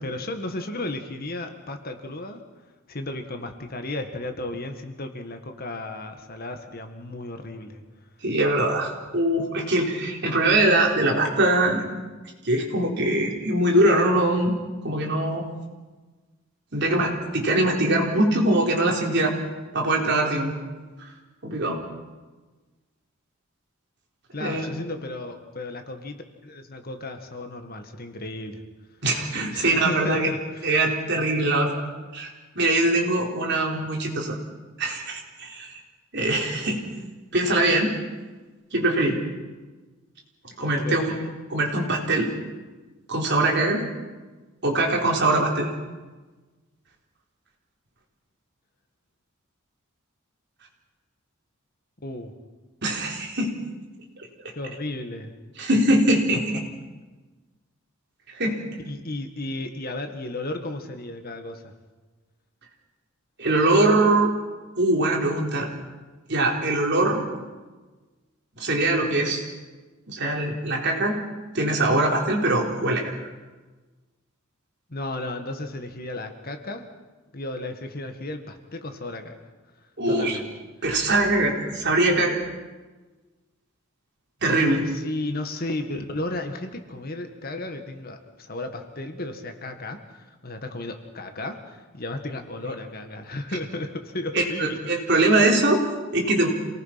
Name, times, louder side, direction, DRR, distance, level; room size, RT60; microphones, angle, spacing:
voice 1, 0.0-2.4 2.9-7.8 24.3-28.6 29.5-30.7 40.7-41.0 52.0-52.3 54.6-55.3 58.8-61.7 74.9-76.9 77.3-79.4 80.1-80.5 84.5-94.8 95.0-95.2, left 2 dB, 45° left, 6 dB, 1.8 m, -34 dB
voice 2, 8.2-11.8 12.4-14.6 14.8-15.4 16.7-19.3 19.7-20.5 21.0-21.1 21.4-21.8 24.4-24.7 29.0-30.3 30.6-31.8 32.1-32.3 32.5-34.4 34.8-35.8 36.1-36.8 37.3-37.9 38.7-39.2 40.6-41.2 41.5-42.3 43.1-43.8 44.6-45.7 52.8-53.6 55.6-56.6 58.3-58.6 63.4-64.3 64.8-65.7 66.3-67.2 68.6-69.4 70.1-71.2 71.5-73.1 80.0-80.4 80.8-82.4 84.4-84.8 94.3-96.5, right 2 dB, 55° right, 0 dB, 3.9 m, -22 dB
28.0 x 18.5 x 5.9 m, 1.3 s
head